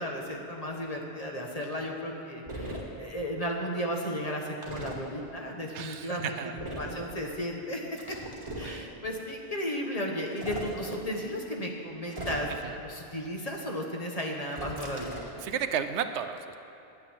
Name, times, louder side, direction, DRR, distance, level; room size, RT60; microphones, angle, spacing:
voice 1, 0.0-6.4 6.8-8.2 8.6-12.5 12.8-15.1, equal, 35° left, 0 dB, 1.3 m, -34 dB
sound 1, 2.5-2.8 4.6-5.0 6.6-7.0 8.0-8.7 10.3-10.7 12.1-12.7 14.5-15.4, right 1 dB, 25° right, 1.5 m, -38 dB
voice 2, 5.7-6.6 8.6-9.0 12.6-12.8 15.4-16.6, right 8 dB, 80° right, 9 dB, 0.9 m, -33 dB
10.0 x 9.4 x 7.2 m, 2.7 s
omnidirectional pair, 1.2 m